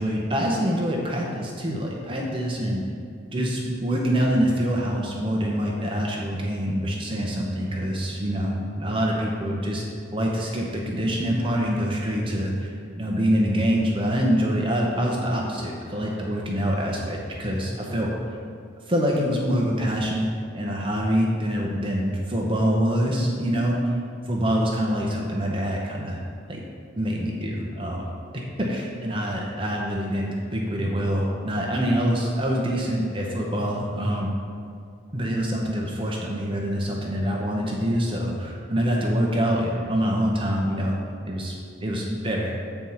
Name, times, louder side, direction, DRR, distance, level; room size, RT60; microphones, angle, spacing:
voice 1, 0.0-2.8 3.3-9.8 10.1-12.7 13.0-18.1 18.9-20.3 20.5-24.0 24.3-26.2 26.5-26.6 27.0-28.0 28.6-34.4 35.1-41.0 41.3-41.5 41.8-42.5, equal, 25° right, -2 dB, 0.8 m, -25 dB
7.9 x 4.5 x 5.6 m, 2.3 s
head